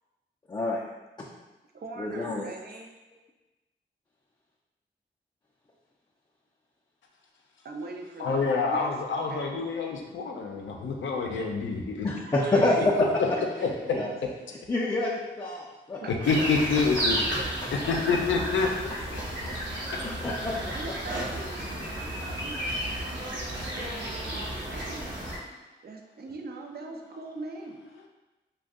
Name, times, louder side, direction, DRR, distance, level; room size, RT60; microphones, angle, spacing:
voice 1, 0.5-0.8 1.2-1.3 2.0-2.5 12.0-13.2 13.9-14.1 14.7-16.0 20.2-20.6, left 2 dB, 20° left, -3 dB, 0.4 m, -26 dB
voice 2, 1.7-2.9 7.6-9.4 12.1-12.9 13.6-14.1 16.0-16.5 17.4-17.7 20.7-25.2 25.8-27.8, right 3 dB, 55° right, 2 dB, 0.5 m, -42 dB
voice 3, 8.2-12.1 13.0-13.3 13.6-13.7 16.1-18.7 19.1-19.2, left 4 dB, 75° left, 2 dB, 0.5 m, -27 dB
sound 1, 16.2-25.4, right 1 dB, 70° right, 0.9 m, -33 dB
2.5 x 2.2 x 3.5 m, 1.1 s
supercardioid pair, 40°, 20 cm